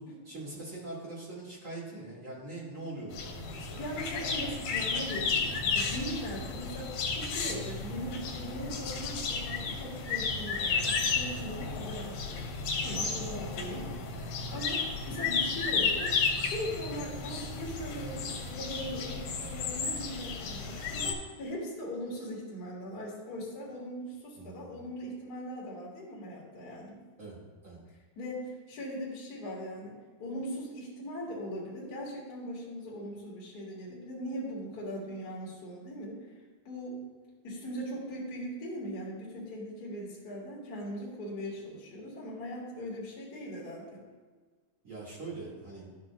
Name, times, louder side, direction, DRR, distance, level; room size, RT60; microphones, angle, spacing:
voice 1, 0.0-3.9 13.7-13.8 14.6-14.7 24.4-24.7 27.2-27.4 27.6-27.8 44.8-45.9, right 2 dB, 25° right, -6 dB, 2.3 m, -42 dB
sound 1, 3.1-21.1, left 4 dB, 85° left, 2.4 m, -33 dB
voice 2, 3.8-12.4 12.8-16.1 16.4-27.0 28.2-36.2 36.6-37.0 37.4-44.0, equal, 35° left, -6 dB, 2.1 m, -40 dB
12.5 x 6.1 x 2.4 m, 1.4 s
omnidirectional pair, 3.6 m